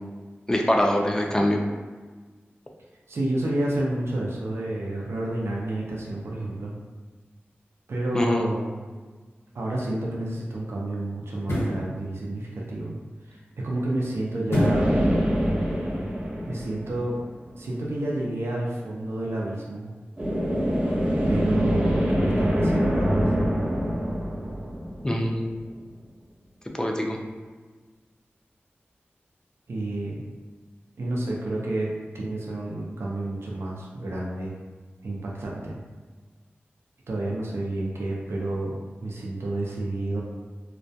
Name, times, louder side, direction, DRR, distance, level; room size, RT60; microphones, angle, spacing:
voice 1, 0.5-1.6 8.1-8.5 25.0-25.4 26.8-27.2, left 1 dB, 15° left, 1 dB, 0.3 m, -23 dB
voice 2, 3.1-6.7 7.9-8.8 9.5-12.9 13.3-13.4 13.6-14.9 16.4-17.1 17.6-19.9 21.3-23.3 29.7-30.2 31.0-34.5 35.0-35.7 37.1-40.2, right 1 dB, 85° right, -3 dB, 0.4 m, -30 dB
sound 1, 9.5-9.7 11.4-11.8 14.5-14.9 15.4-15.5, left 1 dB, 70° left, 0.7 m, -24 dB
sound 2, 14.6-17.4 20.2-25.6, equal, 30° right, 0.6 m, -25 dB
2.2 x 2.1 x 2.6 m, 1.4 s
wide cardioid pair, 90°, 4 cm